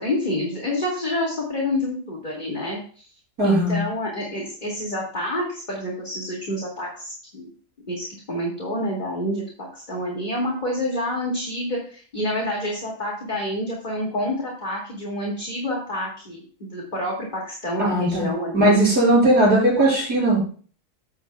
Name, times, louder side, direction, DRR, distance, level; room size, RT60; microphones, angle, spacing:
voice 1, 0.0-3.1 3.4-7.5 7.9-18.8, left 1 dB, 30° left, -3 dB, 2.4 m, -28 dB
voice 2, 3.4-3.8 17.8-20.4, right 1 dB, 80° right, -4 dB, 6.2 m, -18 dB
14.5 x 8.3 x 2.3 m, 0.41 s
omnidirectional pair, 1.6 m